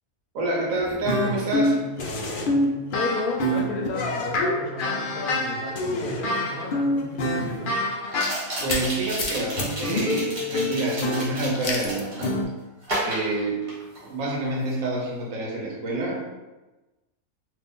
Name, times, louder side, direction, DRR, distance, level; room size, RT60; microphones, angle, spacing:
voice 1, 0.3-1.8 8.6-12.4 13.0-13.8 14.1-16.2, right 2 dB, 70° right, -2 dB, 1.1 m, -28 dB
sound 1, 0.8-8.9 9.2-12.4, left 1 dB, 70° left, 0.5 m, -26 dB
voice 2, 2.9-7.7, left 3 dB, 85° left, 0 dB, 1.1 m, -32 dB
sound 2, 6.4-6.5 8.1-12.3 12.8-14.2 14.4-14.8, right 1 dB, 45° right, 1.2 m, -32 dB
2.8 x 2.5 x 3.5 m, 1.1 s
omnidirectional pair, 1.5 m